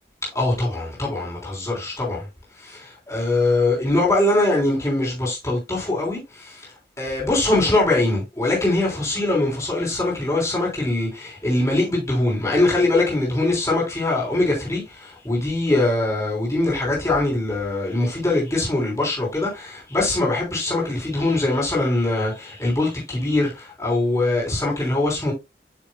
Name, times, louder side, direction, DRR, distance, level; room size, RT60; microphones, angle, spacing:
voice 1, 0.3-2.2 2.6-6.7 7.0-25.3, left 2 dB, 15° left, 3.6 m, -22 dB
8.2 x 6.3 x 2.2 m
head